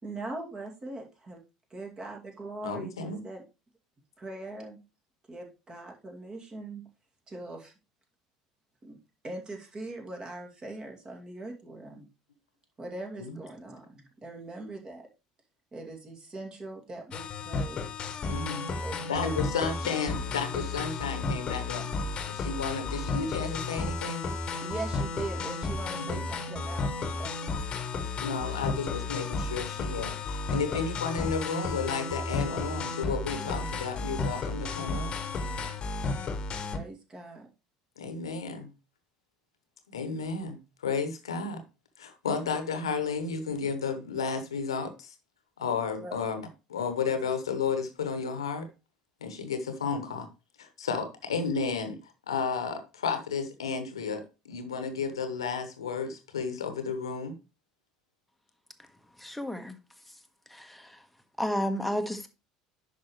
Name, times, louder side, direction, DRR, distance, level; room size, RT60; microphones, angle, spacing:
voice 1, 0.0-1.4 1.7-3.4 4.2-4.8 5.3-6.8 7.3-7.7 8.8-9.0 9.2-12.1 12.8-15.1 15.7-17.9 18.8-20.0 24.6-26.9 27.2-27.3 30.6-30.8 36.7-37.5 46.0-46.2, right 2 dB, 25° right, 2.4 m, -41 dB
voice 2, 2.6-3.2 13.2-13.4 18.3-18.7 19.1-21.9 22.2-24.2 26.0-26.3 28.2-35.1 38.0-38.7 39.9-41.6 42.0-45.1 45.6-48.7 49.2-50.3 50.6-52.0 52.3-57.3, left 5 dB, 75° left, 1.2 m, -32 dB
sound 1, 17.1-36.8, left 3 dB, 35° left, 1.3 m, -33 dB
voice 3, 59.2-59.8 60.5-61.0 61.4-62.3, equal, ahead, 1.3 m, -32 dB
10.0 x 5.7 x 3.2 m
figure-of-eight pair, 65°, 3 cm